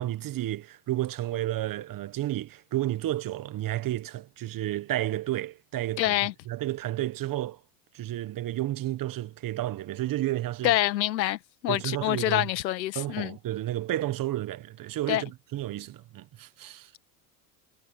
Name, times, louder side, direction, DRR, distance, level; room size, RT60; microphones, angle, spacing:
voice 1, 0.0-6.1 6.5-7.6 7.9-10.8 11.7-12.5 12.9-16.9, right 14 dB, 40° right, 1.3 m, -31 dB
voice 2, 6.0-6.3 10.6-11.4 11.6-13.4 15.1-15.2, left 15 dB, 90° left, 1.7 m, -26 dB
hypercardioid pair, 90°, 50 cm